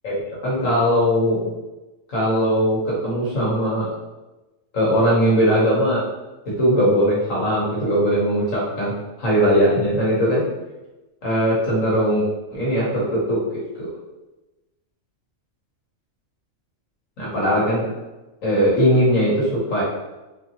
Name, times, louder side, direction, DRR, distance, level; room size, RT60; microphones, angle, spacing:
voice 1, 0.0-1.5 2.1-3.9 4.7-6.0 6.5-8.9 9.2-10.4 11.2-13.9 17.2-17.9 18.4-19.8, equal, 75° left, -6 dB, 1.6 m, -20 dB
4.1 x 2.8 x 2.9 m, 1.1 s
omnidirectional pair, 1.4 m